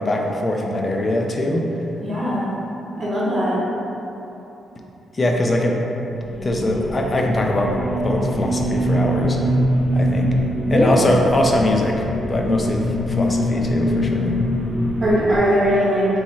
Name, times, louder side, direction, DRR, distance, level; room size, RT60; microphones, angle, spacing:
voice 1, 0.0-1.7 5.1-6.1 6.4-7.7 8.0-9.4 9.9-10.4 10.7-14.4, left 1 dB, 35° left, 1 dB, 0.5 m, -22 dB
voice 2, 2.0-2.4 3.0-3.6 10.7-11.2 15.0-16.1, equal, 40° right, -9 dB, 1.0 m, -20 dB
sound 1, 6.2-15.4, equal, 65° left, 0.9 m, -23 dB
3.4 x 3.2 x 4.1 m, 3.0 s
cardioid pair, 85°, 0 cm